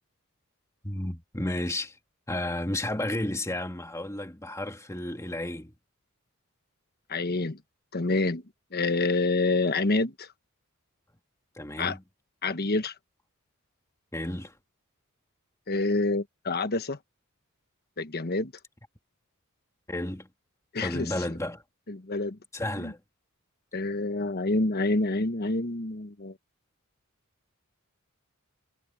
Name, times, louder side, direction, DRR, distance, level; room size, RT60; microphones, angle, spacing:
voice 1, 0.8-2.0 2.3-5.7 11.6-12.0 14.1-14.5 19.9-20.3 20.8-21.6 22.5-23.0, left 1 dB, 15° left, 2.2 m, -32 dB
voice 2, 7.1-7.6 7.9-8.4 8.7-10.3 11.8-12.0 12.4-12.9 15.7-17.0 18.0-18.5 20.7-21.1 21.9-22.4 22.8-22.9 23.7-26.3, left 2 dB, 50° left, 1.3 m, -27 dB
head